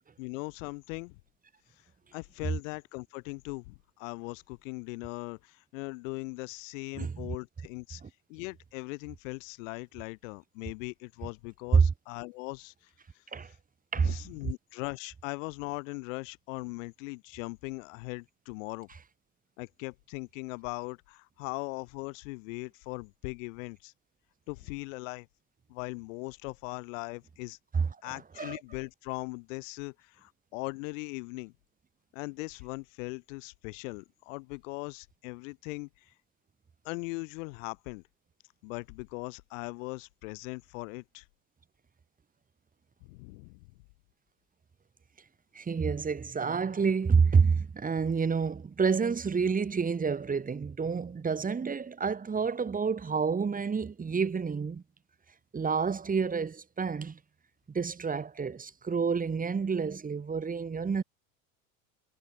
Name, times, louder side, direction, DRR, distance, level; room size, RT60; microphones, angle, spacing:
voice 1, 0.2-1.2 2.1-8.0 8.3-12.7 14.0-18.9 19.6-23.9 24.5-25.3 25.7-27.6 28.0-31.5 32.1-36.1 36.8-38.0 38.6-41.2 43.0-43.7, left 27 dB, 65° left, 6.4 m, -40 dB
voice 2, 7.0-7.3 11.7-11.8 13.3-13.5 13.9-14.1 27.7-28.6 45.5-54.8 55.5-57.2 57.7-61.0, right 5 dB, 20° right, 5.5 m, -28 dB
supercardioid pair, 105°, 40 cm